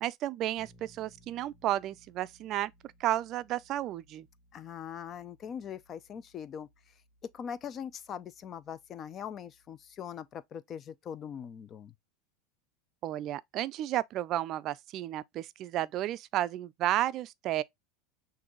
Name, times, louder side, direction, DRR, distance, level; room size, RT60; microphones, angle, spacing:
voice 1, 0.0-2.7 3.0-4.3 13.0-17.6, right 13 dB, 45° right, 0.4 m, -32 dB
Bass guitar, 0.6-10.4, equal, ahead, 1.6 m, -65 dB
voice 2, 4.5-6.7 7.2-11.9, left 8 dB, 30° left, 0.5 m, -41 dB
6.2 x 2.6 x 3.0 m
supercardioid pair, 125°, 0 cm